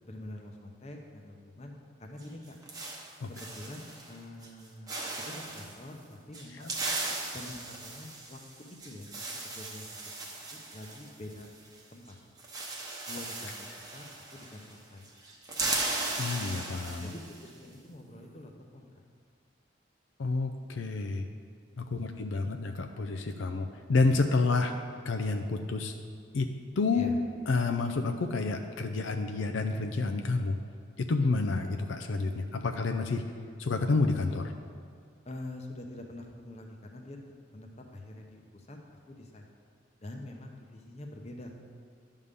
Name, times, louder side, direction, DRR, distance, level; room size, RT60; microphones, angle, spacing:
voice 1, 0.0-2.6 3.3-4.9 5.2-6.8 7.3-8.4 8.8-10.0 10.3-11.5 11.9-12.2 13.1-14.0 14.3-15.1 17.0-19.0 21.8-22.1 26.9-27.2 35.2-37.2 37.5-38.8 39.1-39.5 40.0-41.5, left 1 dB, 35° left, 2 dB, 0.8 m, -45 dB
sound 1, 2.2-4.1 4.4-4.6 4.9-5.7 6.3-11.8 12.1-12.2 12.4-14.8 15.0-17.5, right 2 dB, 20° right, 0.9 m, -37 dB
voice 2, 16.2-17.1 20.2-21.2 21.8-24.7 25.0-25.9 26.3-27.1 27.5-30.6 31.0-33.2 33.6-34.5, left 3 dB, 75° left, 5 dB, 0.5 m, -29 dB
11.0 x 3.7 x 6.7 m, 2.2 s
head